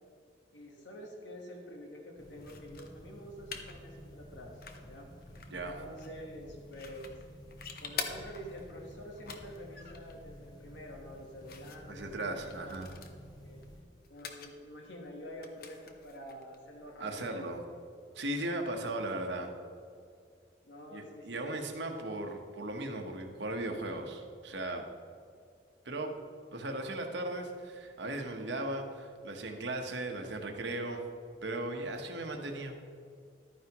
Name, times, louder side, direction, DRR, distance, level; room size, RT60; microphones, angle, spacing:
voice 1, 0.5-5.1 5.6-7.2 7.8-12.8 13.0-13.6 14.1-17.6 18.3-18.7 20.6-22.3, equal, 85° left, 0 dB, 1.3 m, -48 dB
sound 1, 2.2-13.8, equal, 20° left, 1.1 m, -52 dB
sound 2, 2.4-17.5, left 5 dB, 55° left, 0.8 m, -48 dB
voice 2, 5.5-5.8 11.9-12.9 17.0-17.6 18.1-19.5 20.9-24.8 25.8-26.1 26.5-31.0 31.4-32.8, right 1 dB, 75° right, 3 dB, 1.2 m, -37 dB
12.0 x 9.5 x 3.0 m, 2.3 s
head